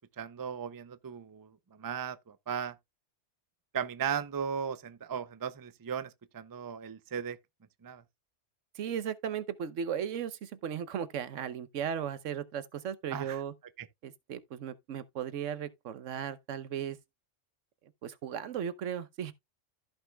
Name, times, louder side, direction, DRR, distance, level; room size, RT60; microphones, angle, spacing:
voice 1, 0.0-2.8 3.7-7.4 7.8-8.0 13.1-13.4 13.8-13.9, right 7 dB, 35° right, 0.3 m, -37 dB
voice 2, 8.7-13.5 14.0-17.0 18.0-19.3, right 8 dB, 90° right, 1.1 m, -36 dB
14.5 x 5.5 x 2.2 m
omnidirectional pair, 1.2 m